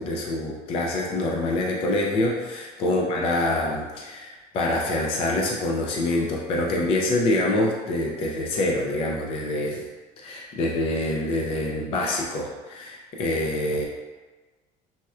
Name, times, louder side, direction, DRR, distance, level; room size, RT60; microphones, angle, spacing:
voice 1, 0.0-9.8 10.2-13.8, left 1 dB, 35° left, -2 dB, 0.4 m, -26 dB
4.1 x 2.1 x 2.3 m, 1.3 s
cardioid pair, 175°, 17 cm